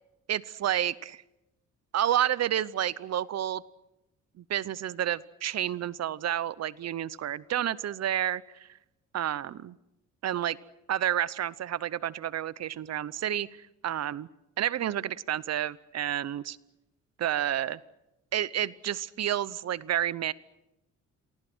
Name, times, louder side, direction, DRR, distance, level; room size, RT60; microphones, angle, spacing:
voice 1, 0.3-1.2 1.9-3.6 4.4-8.7 9.1-9.8 10.2-10.5 10.9-13.5 13.8-14.3 14.6-16.6 17.2-17.8 18.3-20.3, right 11 dB, 60° right, 19 dB, 0.8 m, -30 dB
28.5 x 24.0 x 6.2 m, 0.91 s
cardioid pair, 90°, 30 cm